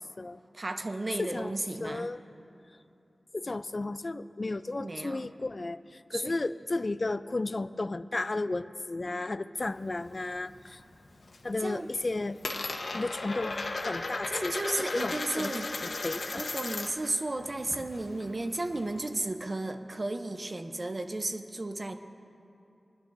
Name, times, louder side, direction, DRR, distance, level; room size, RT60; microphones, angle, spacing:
voice 1, 0.5-2.1 4.8-5.3 6.1-6.3 11.6-11.9 14.3-15.7 16.3-21.9, right 2 dB, 40° right, 7 dB, 0.7 m, -34 dB
voice 2, 1.2-1.5 1.8-2.2 3.3-10.8 11.4-12.4 12.9-14.6 14.9-15.5 16.0-16.4, left 2 dB, 45° left, 13 dB, 0.4 m, -33 dB
Coin (dropping), 9.6-10.7 11.0-11.5 11.8-17.1 17.4-19.1, left 3 dB, 80° left, 1.0 m, -36 dB
24.0 x 11.5 x 2.6 m, 2.7 s
wide cardioid pair, 70°, 0 cm